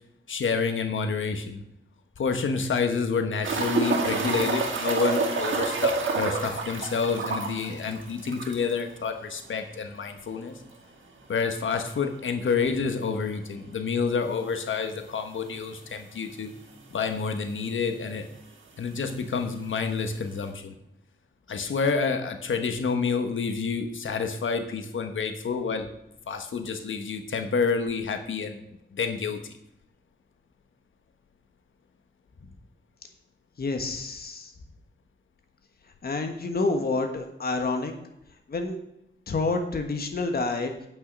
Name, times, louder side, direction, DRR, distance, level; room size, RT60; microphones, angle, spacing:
voice 1, 0.3-1.6 2.2-10.6 11.3-16.5 16.9-18.3 18.8-20.7 21.5-25.9 26.3-28.6 28.9-29.5, left 5 dB, 80° left, 6 dB, 1.2 m, -28 dB
sound 1, 3.4-8.8 9.1-9.2 9.5-9.6 12.4-12.5 14.2-14.3 15.1-15.2 15.4-15.5 16.4-16.5 16.7-17.3 18.2-18.3, right 4 dB, 80° right, 2.4 m, -28 dB
voice 2, 33.6-34.5 36.0-37.9 38.5-38.8 39.3-40.7, left 3 dB, 50° left, 5 dB, 1.4 m, -28 dB
9.5 x 8.9 x 5.3 m, 0.81 s
wide cardioid pair, 125°, 20 cm